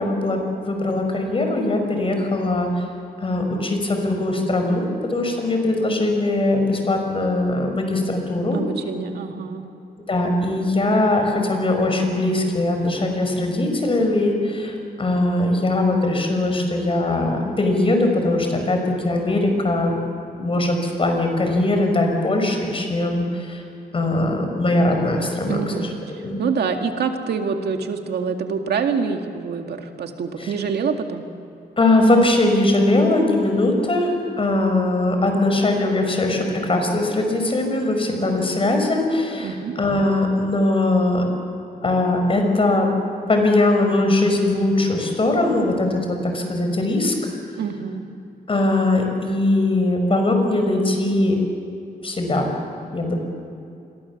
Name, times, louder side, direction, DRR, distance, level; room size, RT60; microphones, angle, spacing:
voice 1, 0.0-2.8 3.2-8.6 10.1-20.0 20.4-23.6 23.9-25.9 26.2-26.4 30.4-30.5 31.8-34.1 34.4-41.2 41.8-42.9 43.3-47.3 48.5-51.4 52.0-52.5 52.9-53.2, left 2 dB, 35° left, 4 dB, 5.3 m, -20 dB
voice 2, 8.5-9.6 25.5-25.9 26.4-31.2 39.4-39.7 47.5-48.0, right 5 dB, 85° right, 4 dB, 2.2 m, -26 dB
27.0 x 22.5 x 7.3 m, 2.6 s
wide cardioid pair, 120°, 16 cm